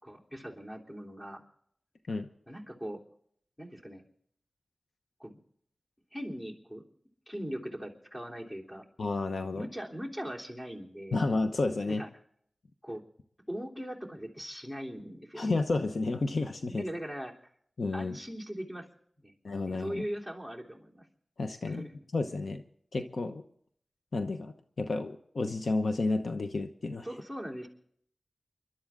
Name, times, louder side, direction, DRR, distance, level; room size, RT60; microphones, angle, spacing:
voice 1, 0.0-1.4 2.5-3.0 3.6-4.0 5.2-5.4 6.1-6.8 7.3-8.8 9.5-11.2 11.9-12.1 12.8-13.0 13.5-15.5 16.6-17.3 17.9-18.9 19.2-19.3 19.6-21.1 21.7-22.1 27.0-27.7, equal, 15° left, 0 dB, 3.4 m, -40 dB
voice 2, 9.0-9.7 11.1-12.0 15.4-16.8 17.8-18.2 19.4-20.0 21.4-21.9 22.1-22.6 22.9-23.4 24.1-27.1, left 3 dB, 70° left, 7 dB, 0.9 m, -31 dB
29.0 x 12.0 x 3.7 m, 0.65 s
wide cardioid pair, 75°, 0 cm